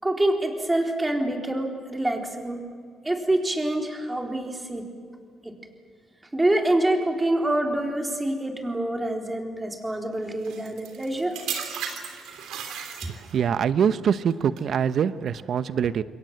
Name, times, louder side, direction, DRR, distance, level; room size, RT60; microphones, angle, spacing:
voice 1, 0.0-2.6 3.0-4.9 5.4-5.6 6.3-11.4, right 1 dB, 15° right, 2 dB, 4.0 m, -26 dB
sound 1, 10.4-13.5 14.3-14.6, right 7 dB, 85° right, 3.2 m, -35 dB
voice 2, 13.1-16.0, right 7 dB, 60° right, 14 dB, 0.8 m, -24 dB
28.0 x 22.0 x 7.8 m, 2.1 s
cardioid pair, 90°, 0 cm